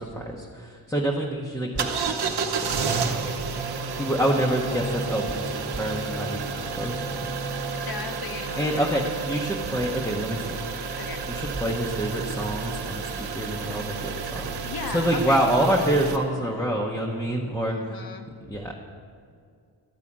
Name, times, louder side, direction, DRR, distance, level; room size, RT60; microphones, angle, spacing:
voice 1, 0.0-3.2 3.9-7.3 8.6-10.6 11.3-18.1 18.4-18.7, right 1 dB, 5° left, -2 dB, 0.8 m, -27 dB
sound 1, 1.8-16.2, right 5 dB, 55° right, 0.9 m, -31 dB
voice 2, 7.7-8.9 11.0-11.2 14.6-15.4 16.5-16.6 17.7-18.3, left 4 dB, 50° left, 6 dB, 1.0 m, -36 dB
12.5 x 4.8 x 8.5 m, 2.2 s
wide cardioid pair, 155°, 45 cm